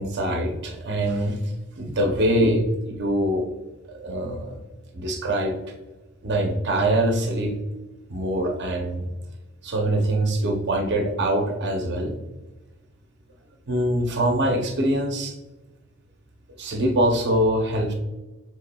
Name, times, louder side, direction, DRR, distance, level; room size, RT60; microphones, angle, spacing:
voice 1, 0.0-3.5 3.9-4.6 4.9-5.5 6.2-7.5 8.1-9.1 9.6-12.1 13.7-15.3 16.6-17.9, right 1 dB, 50° right, 3 dB, 0.7 m, -23 dB
6.7 x 3.5 x 2.2 m, 1.1 s
head